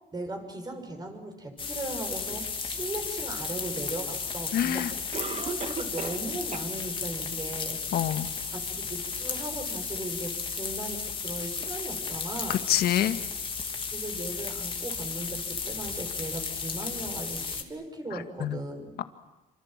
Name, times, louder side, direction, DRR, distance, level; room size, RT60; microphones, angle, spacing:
voice 1, 0.1-4.9 5.4-8.0 8.5-12.6 13.9-19.0, right 2 dB, 25° right, 5 dB, 5.8 m, -38 dB
sound 1, 1.6-17.6, left 5 dB, 30° left, 2.9 m, -34 dB
Cough, 4.0-4.1 5.1-6.3 6.5-6.6 7.2-7.3 7.8-7.9, right 6 dB, 40° right, 2.3 m, -36 dB
voice 2, 4.5-4.9 7.9-8.3 12.5-13.2 18.1-18.6, left 11 dB, 65° left, 9 dB, 1.9 m, -26 dB
27.5 x 25.5 x 7.5 m, 1.1 s
cardioid pair, 110°, 17 cm